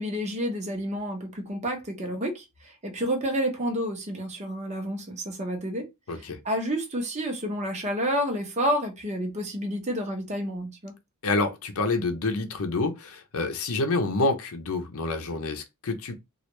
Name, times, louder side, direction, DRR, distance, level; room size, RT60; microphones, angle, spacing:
voice 1, 0.0-5.9 6.4-10.9, equal, 30° right, 0.9 m, -29 dB
voice 2, 6.1-6.4 11.2-16.1, left 3 dB, 70° left, 0.6 m, -28 dB
3.1 x 2.4 x 3.0 m
head